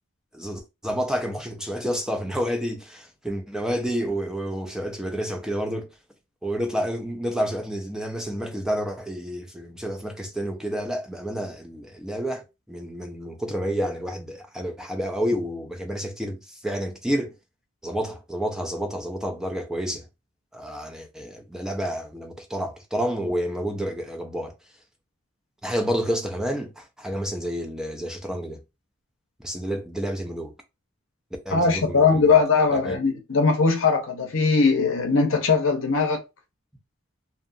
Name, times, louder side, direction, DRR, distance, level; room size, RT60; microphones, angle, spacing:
voice 1, 0.3-5.9 6.4-17.3 17.8-20.0 20.5-24.5 25.6-28.6 29.4-30.5 31.5-32.3 32.8-33.0, equal, 5° right, 0.3 m, -29 dB
voice 2, 31.5-36.2, left 4 dB, 65° left, 0.6 m, -20 dB
2.6 x 2.3 x 2.5 m
head